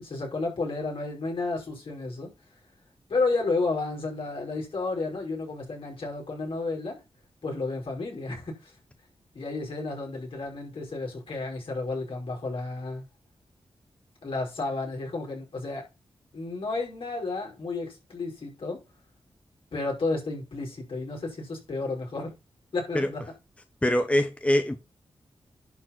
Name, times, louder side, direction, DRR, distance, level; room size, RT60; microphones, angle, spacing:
voice 1, 0.0-2.3 3.1-7.0 7.4-8.7 9.3-13.1 14.2-15.9 16.3-18.8 19.7-22.3 22.7-23.2, left 3 dB, 65° left, 5.6 m, -32 dB
voice 2, 23.8-24.8, left 1 dB, 15° left, 1.0 m, -23 dB
10.5 x 4.3 x 6.0 m
cardioid pair, 80°, 10 cm